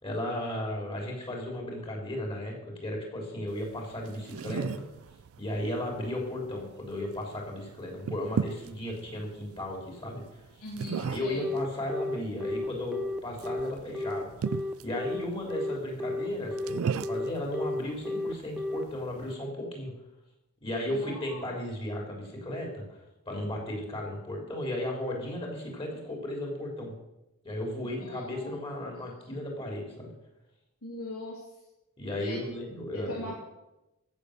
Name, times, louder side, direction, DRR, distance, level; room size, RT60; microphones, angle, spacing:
voice 1, 0.0-4.8 5.4-10.2 10.5-10.6 10.9-14.5 14.8-19.9 20.6-23.0 23.2-26.9 27.4-30.1 32.0-33.3, left 1 dB, 25° left, 0 dB, 3.3 m, -35 dB
sound 1, 3.5-19.3, right 6 dB, 65° right, 0.4 m, -39 dB
voice 2, 10.6-11.5 20.9-21.5 28.0-28.9 30.8-31.4 32.2-32.4 32.9-33.4, left 1 dB, 85° left, -3 dB, 2.5 m, -41 dB
Telephone, 11.4-18.8, left 2 dB, 5° right, 0.7 m, -32 dB
15.0 x 7.2 x 6.5 m, 0.95 s
head